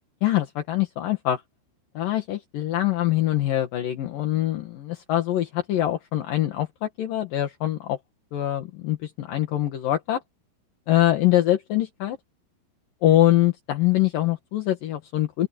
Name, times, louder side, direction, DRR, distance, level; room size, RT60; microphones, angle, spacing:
voice 1, 0.2-1.4 1.9-8.0 8.3-10.2 10.9-12.2 13.0-15.5, left 14 dB, 60° left, 2.6 m, -23 dB
open air
omnidirectional pair, 5.9 m